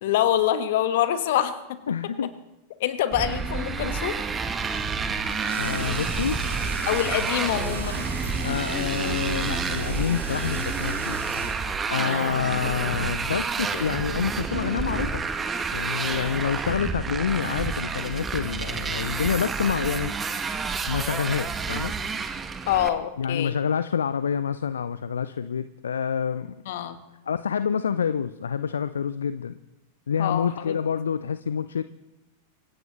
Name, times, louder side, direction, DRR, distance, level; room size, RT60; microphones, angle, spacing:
voice 1, 0.0-1.6 2.8-4.2 6.8-8.1 12.0-12.4 22.7-23.6 26.7-27.0 30.2-30.8, left 11 dB, 55° left, 11 dB, 1.3 m, -25 dB
voice 2, 1.9-2.3 5.6-6.4 8.4-11.2 11.9-15.2 15.7-20.1 20.9-21.9 23.2-26.6 27.3-29.5 30.1-31.8, left 7 dB, 70° left, 14 dB, 0.5 m, -27 dB
Motorcycle, 3.1-22.9, right 5 dB, 20° right, 1.3 m, -29 dB
sound 1, 4.6-9.9, right 6 dB, 60° right, 2.2 m, -40 dB
sound 2, 5.5-11.5, right 1 dB, 80° right, 5.5 m, -36 dB
26.0 x 16.5 x 3.1 m, 0.93 s
figure-of-eight pair, 90°, 0 cm